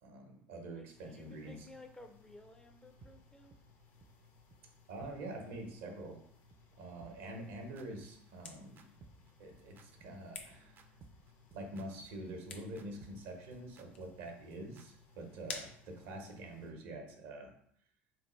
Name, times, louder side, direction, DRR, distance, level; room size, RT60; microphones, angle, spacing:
voice 1, 0.0-1.7 4.9-6.2 6.8-8.8 9.4-10.8 11.5-17.5, right 1 dB, 75° right, 3 dB, 0.9 m, -46 dB
voice 2, 0.7-3.5, left 2 dB, 10° left, 6 dB, 0.5 m, -55 dB
sound 1, 0.9-16.7, left 4 dB, 70° left, 1.0 m, -64 dB
sound 2, 3.0-3.1 3.5-3.6 4.0-4.1 4.5-4.6 5.0-5.1 5.5-5.6 6.0-6.1 6.5-6.6 7.0-14.9, right 4 dB, 40° right, 0.5 m, -59 dB
sound 3, 8.0-16.6, left 4 dB, 90° left, 0.5 m, -53 dB
3.7 x 3.3 x 3.0 m, 0.67 s
hypercardioid pair, 70°, 6 cm